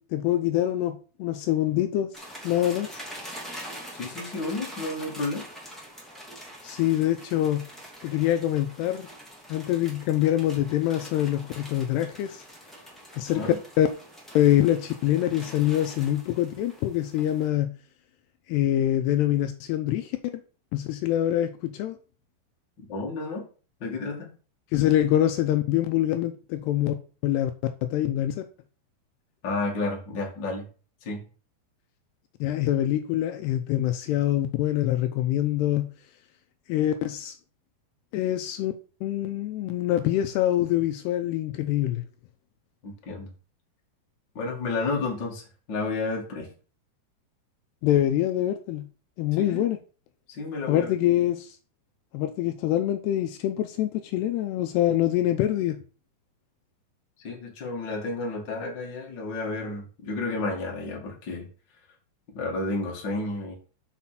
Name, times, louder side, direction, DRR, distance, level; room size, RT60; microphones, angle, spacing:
voice 1, 0.0-2.1 2.4-2.9 6.6-7.7 8.0-9.1 9.5-12.4 13.1-13.5 13.8-13.9 14.3-17.7 18.5-20.1 20.7-22.0 24.7-26.9 27.2-27.5 27.8-28.4 32.4-35.9 36.7-37.4 38.1-38.7 39.0-42.0 47.8-48.9 49.2-49.8 50.7-51.6 52.1-55.8, left 12 dB, 80° left, 2.6 m, -25 dB
sound 1, 2.1-17.5, equal, ahead, 1.5 m, -44 dB
voice 2, 3.9-5.4 13.3-13.6 22.9-23.4 23.8-24.3 29.4-30.6 31.0-31.2 42.8-43.3 44.3-46.5 49.3-49.6 50.3-50.9 57.2-61.5 62.3-63.5, left 3 dB, 35° left, 2.1 m, -31 dB
6.5 x 5.8 x 5.8 m
omnidirectional pair, 5.0 m